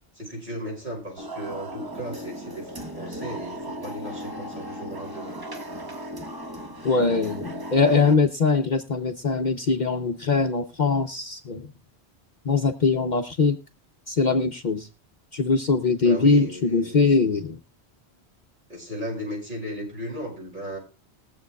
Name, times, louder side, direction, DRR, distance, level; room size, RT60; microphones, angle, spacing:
voice 1, 0.1-5.4 16.0-17.0 18.7-20.8, equal, 50° right, -2 dB, 6.5 m, -35 dB
sound 1, 1.2-8.2, equal, 20° right, 1.1 m, -36 dB
voice 2, 6.8-11.7 12.4-13.6 14.1-14.9 15.3-17.6, left 4 dB, 50° left, 5 dB, 0.8 m, -22 dB
22.0 x 7.5 x 2.3 m, 0.30 s
omnidirectional pair, 1.1 m